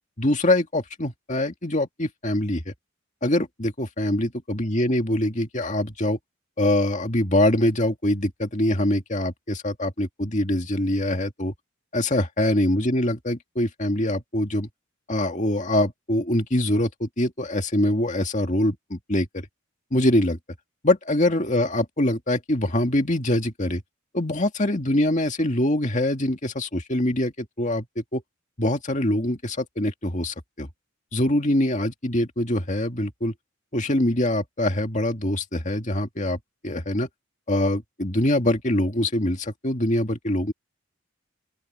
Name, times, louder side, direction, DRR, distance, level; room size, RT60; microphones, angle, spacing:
voice 1, 0.2-2.7 3.2-6.2 6.6-11.5 11.9-14.7 15.1-19.4 19.9-20.4 20.8-23.8 24.1-28.2 28.6-30.7 31.1-33.3 33.7-37.1 37.5-40.5, left 1 dB, 35° left, 2.2 m, -24 dB
open air
head